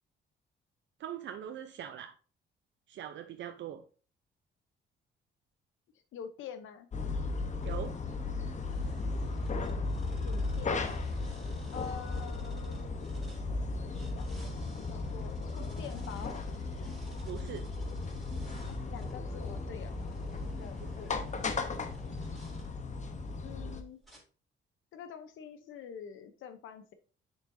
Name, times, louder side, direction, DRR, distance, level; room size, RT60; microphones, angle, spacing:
voice 1, 1.0-2.1 2.9-3.8 7.6-8.0 17.2-17.6 20.8-20.9, right 10 dB, 65° right, 7 dB, 0.6 m, -41 dB
voice 2, 6.1-6.9 10.2-10.9 11.7-13.1 14.1-14.6 14.9-16.4 16.8-16.9 18.7-19.9 20.3-21.3 23.4-24.0 24.9-26.9, left 7 dB, 80° left, 9 dB, 0.8 m, -46 dB
sound 1, 6.9-23.8, left 3 dB, 35° left, 0.9 m, -36 dB
sound 2, 7.6-13.4 13.9-22.7 23.3-23.6 24.0-24.2, equal, ahead, 3.4 m, -52 dB
6.9 x 6.2 x 2.7 m, 0.38 s
cardioid pair, 90°, 20 cm